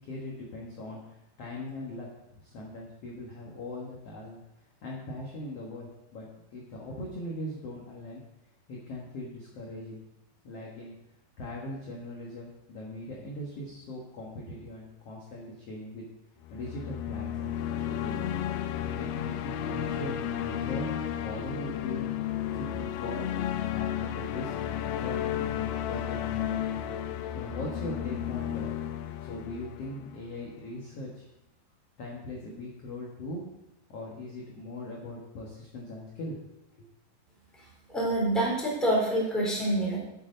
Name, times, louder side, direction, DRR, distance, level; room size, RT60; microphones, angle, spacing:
voice 1, 0.0-2.1 2.4-4.4 4.8-8.2 8.7-10.0 10.4-10.9 11.4-16.0 16.5-18.4 19.0-20.9 21.2-22.1 22.5-24.5 25.0-26.6 27.3-28.7 29.2-31.3 32.0-33.4 33.9-36.4 36.8-36.9, left 1 dB, 55° left, -3 dB, 1.8 m, -40 dB
sound 1, 16.4-30.6, left 10 dB, 80° left, 2.7 m, -33 dB
voice 2, 37.9-40.0, right 1 dB, ahead, -4 dB, 3.3 m, -26 dB
9.2 x 8.6 x 5.4 m, 0.87 s
omnidirectional pair, 4.9 m